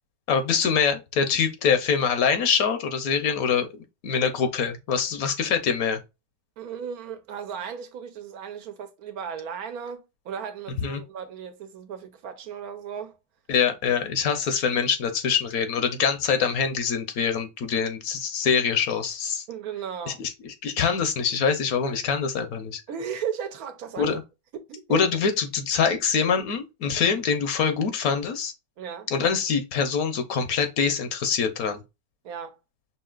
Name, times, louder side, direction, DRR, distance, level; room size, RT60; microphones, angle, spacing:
voice 1, 0.3-3.7 4.0-6.0 10.8-11.0 13.5-19.4 20.2-22.8 24.0-24.2 24.9-28.5 29.1-31.8, left 6 dB, 75° left, 1.2 m, -24 dB
voice 2, 6.6-13.2 19.5-20.2 22.9-24.2 24.5-25.1 28.8-29.1 32.2-32.6, right 7 dB, 75° right, 1.2 m, -35 dB
5.5 x 2.8 x 2.3 m
omnidirectional pair, 1.6 m